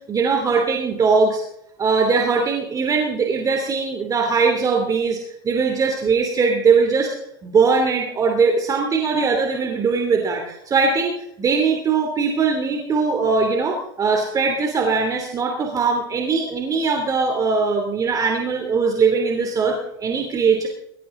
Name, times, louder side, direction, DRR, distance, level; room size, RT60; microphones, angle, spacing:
voice 1, 0.1-1.4 1.8-5.2 5.4-7.1 7.4-20.7, right 5 dB, 30° right, 2 dB, 2.8 m, -20 dB
21.5 x 13.0 x 3.8 m, 0.76 s
hypercardioid pair, 90°, 12 cm